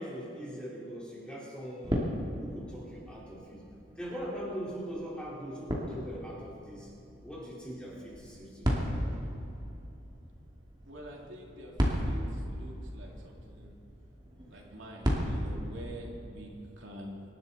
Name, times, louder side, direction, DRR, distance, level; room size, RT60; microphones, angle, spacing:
voice 1, 0.0-2.0 2.4-3.6 4.0-6.9 7.2-9.0 14.5-14.6, equal, 5° left, -7 dB, 4.2 m, -41 dB
sound 1, 1.8-15.5, equal, 20° right, 2.5 m, -36 dB
voice 2, 10.8-11.7 12.0-13.7 14.5-17.2, right 1 dB, 80° right, -2 dB, 2.9 m, -46 dB
26.0 x 12.0 x 4.2 m, 2.9 s
head